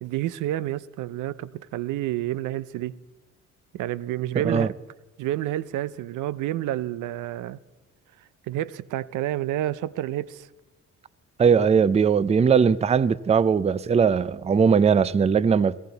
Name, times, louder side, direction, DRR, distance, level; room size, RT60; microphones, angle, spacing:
voice 1, 0.0-3.0 3.7-4.7 5.2-7.6 8.5-10.5, right 14 dB, 85° right, 0.6 m, -29 dB
voice 2, 11.4-15.8, right 6 dB, 20° right, 0.4 m, -20 dB
21.5 x 16.5 x 4.0 m
cardioid pair, 90°, 30 cm